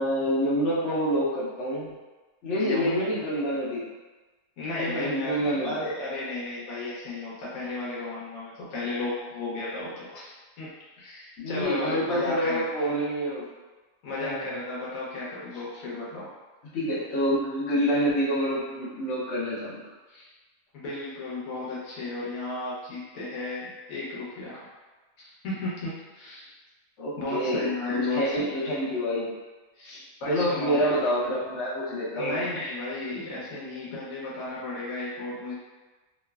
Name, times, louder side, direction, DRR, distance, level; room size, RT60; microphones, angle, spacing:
voice 1, 0.0-1.9 2.4-3.8 4.8-5.8 11.4-13.5 14.2-14.6 16.7-19.8 27.0-29.3 29.8-32.4, equal, 65° left, -8 dB, 1.0 m, -27 dB
voice 2, 2.5-3.0 4.6-10.7 11.0-12.6 14.0-16.3 20.1-20.3 20.7-24.6 25.2-26.5 27.2-28.5 29.8-29.9 30.2-30.8 32.1-35.5, left 2 dB, 90° left, -7 dB, 1.2 m, -34 dB
3.1 x 2.0 x 2.3 m, 1.2 s
omnidirectional pair, 1.4 m